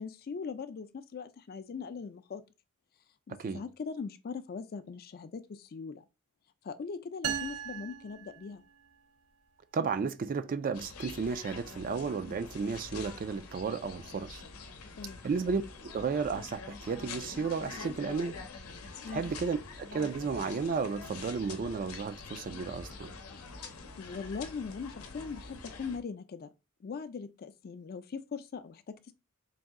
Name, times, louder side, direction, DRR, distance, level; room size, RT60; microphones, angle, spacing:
voice 1, 0.0-2.4 3.3-6.1 6.6-8.6 15.0-15.3 19.0-19.3 24.0-26.5 26.8-29.1, left 5 dB, 45° left, 0.4 m, -40 dB
sound 1, 7.2-9.0, right 8 dB, 85° right, 0.7 m, -38 dB
voice 2, 9.7-14.4 15.2-18.4 19.1-23.1, right 5 dB, 40° right, 0.3 m, -33 dB
sound 2, 10.7-26.0, left 4 dB, 90° left, 0.7 m, -45 dB
4.0 x 2.6 x 3.6 m
head